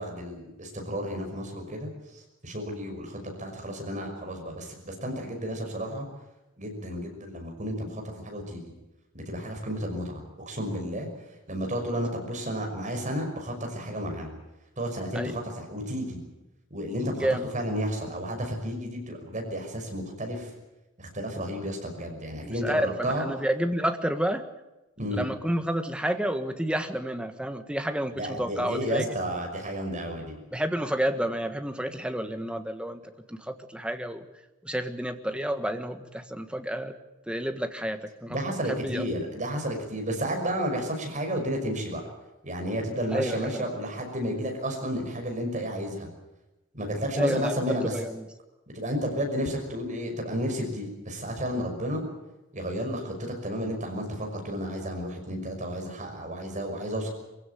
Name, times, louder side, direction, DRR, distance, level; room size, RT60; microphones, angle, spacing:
voice 1, 0.0-6.1 6.6-8.7 9.1-11.1 11.5-14.3 14.8-16.2 16.7-17.3 17.5-20.5 21.0-23.2 25.0-25.2 28.1-30.4 38.3-42.0 42.4-46.1 46.7-48.0 48.7-52.0 52.5-57.1, equal, 35° right, 3 dB, 5.9 m, -32 dB
voice 2, 17.2-17.5 22.4-24.5 25.2-29.1 30.5-33.0 33.3-34.2 34.6-36.9 37.3-39.1 43.1-43.6 47.2-48.2, right 1 dB, 5° right, 7 dB, 1.5 m, -30 dB
23.5 x 16.0 x 9.2 m, 1.0 s
head